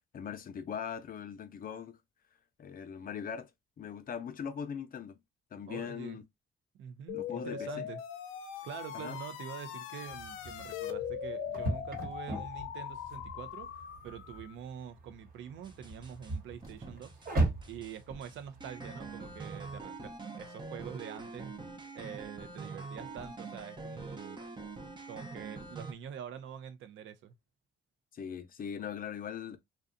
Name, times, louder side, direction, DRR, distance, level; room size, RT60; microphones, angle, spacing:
voice 1, 0.1-2.0 2.6-3.5 3.8-5.2 5.5-6.2 7.1-7.9 8.9-9.2 28.1-29.6, left 7 dB, 45° left, 0.6 m, -40 dB
voice 2, 5.7-6.2 6.7-8.0 8.6-17.2 17.7-21.5 21.9-24.4 25.1-27.3, right 8 dB, 75° right, 0.5 m, -45 dB
sound 1, 7.1-14.6, left 9 dB, 90° left, 0.5 m, -41 dB
sound 2, 10.1-19.8, right 2 dB, 45° right, 1.2 m, -38 dB
sound 3, 15.6-16.3 16.6-17.3 17.6-25.9, right 3 dB, 25° right, 0.5 m, -44 dB
2.6 x 2.2 x 2.4 m
cardioid pair, 90°, 20 cm